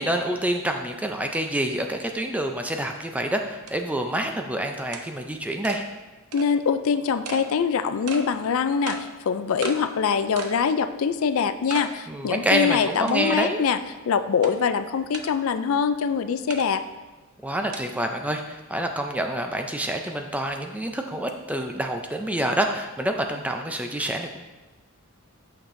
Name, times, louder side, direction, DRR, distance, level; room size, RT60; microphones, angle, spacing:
voice 1, 0.0-5.8 12.1-13.6 17.4-24.4, right 1 dB, 5° right, 4 dB, 0.4 m, -27 dB
sound 1, 3.0-3.1 3.7-3.8 4.1-4.2 4.9-5.1 5.6-5.8 6.3-6.5 7.2-7.4 8.1-8.2 8.9-9.0 9.6-9.8 10.4-10.6 11.0-11.1 11.7-11.9 12.3-12.4 13.1-13.5 14.4-14.5 15.1-15.3 16.5-16.7 17.7-17.8, right 4 dB, 90° right, 0.7 m, -35 dB
voice 2, 6.3-9.0 9.2-13.8 14.1-16.8, left 6 dB, 65° left, 10 dB, 0.4 m, -23 dB
8.5 x 6.6 x 2.6 m, 1.1 s
head